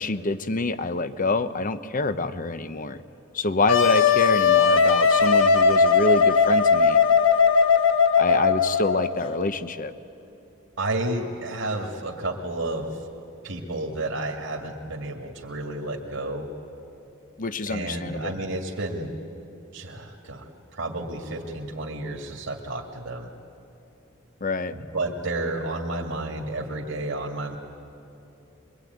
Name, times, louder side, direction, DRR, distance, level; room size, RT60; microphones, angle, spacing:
voice 1, 0.0-3.0 3.3-7.0 8.2-9.9 17.4-18.4 24.4-24.7, left 3 dB, 45° left, 12 dB, 0.8 m, -26 dB
Wind instrument woodwind instrument, 3.7-9.2, left 5 dB, 70° left, 1.3 m, -18 dB
voice 2, 10.8-12.9 13.4-16.5 17.7-19.1 19.7-23.3 24.7-27.6, right 2 dB, 75° right, 0 dB, 2.3 m, -31 dB
24.5 x 23.0 x 9.4 m, 2.8 s
head